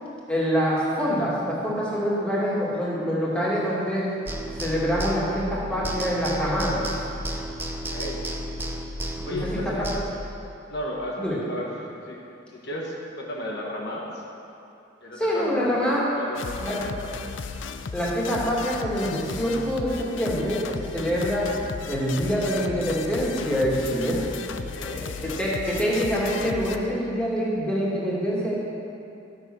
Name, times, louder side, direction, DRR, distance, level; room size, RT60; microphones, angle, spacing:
voice 1, 0.3-4.1 4.6-6.8 9.1-9.9 11.2-11.4 15.2-16.0 16.6-16.8 17.9-21.5 21.9-24.2 25.2-28.6, equal, 5° left, -7 dB, 2.5 m, -25 dB
sound 1, 4.3-5.6 5.8-10.0, equal, 10° right, 0.8 m, -32 dB
voice 2, 9.2-10.0 10.7-11.2 11.5-12.2 12.5-14.2 15.0-15.8 16.1-16.7 17.0-17.4 24.7-25.2, left 1 dB, 60° left, -3 dB, 1.5 m, -34 dB
sound 2, 16.3-26.8, left 5 dB, 80° left, 0.5 m, -35 dB
12.5 x 7.7 x 6.2 m, 2.7 s
head